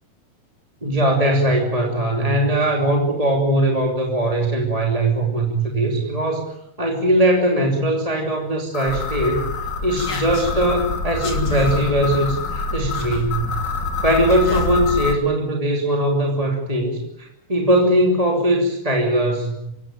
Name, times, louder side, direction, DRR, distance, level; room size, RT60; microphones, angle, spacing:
voice 1, 0.8-6.5 6.8-13.6 14.0-19.7, right 1 dB, 10° right, 0 dB, 2.6 m, -20 dB
sound 1, 8.7-15.2, left 3 dB, 35° left, 3.4 m, -26 dB
27.0 x 16.5 x 9.1 m, 0.80 s
omnidirectional pair, 3.7 m